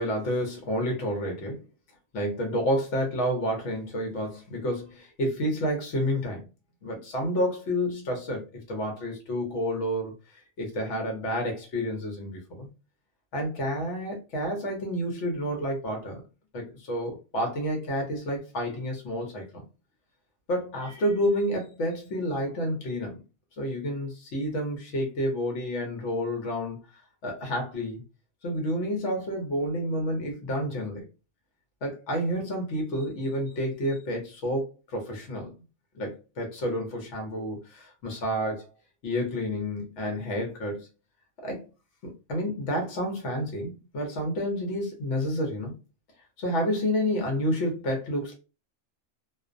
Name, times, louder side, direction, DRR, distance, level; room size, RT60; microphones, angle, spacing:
voice 1, 0.0-1.6 2.1-6.4 6.8-12.7 13.3-16.2 16.5-19.6 20.5-23.2 23.6-26.8 27.2-28.0 28.4-31.0 31.8-35.5 35.9-38.7 39.0-40.9 41.4-41.7 42.0-45.7 46.4-48.3, equal, 65° left, 2 dB, 1.0 m, -30 dB
2.5 x 2.0 x 2.4 m, 0.30 s
omnidirectional pair, 1.4 m